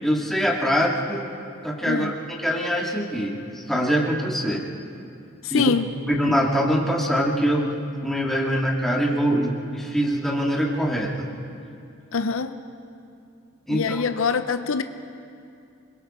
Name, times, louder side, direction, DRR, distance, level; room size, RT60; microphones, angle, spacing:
voice 1, 0.0-1.2 1.6-4.7 5.5-5.7 6.1-7.7 8.0-11.3 13.7-14.0, equal, ahead, -3 dB, 2.2 m, -23 dB
voice 2, 5.4-5.9 12.1-12.6 13.7-14.8, left 5 dB, 70° left, 9 dB, 0.7 m, -24 dB
26.5 x 22.5 x 4.4 m, 2.5 s
head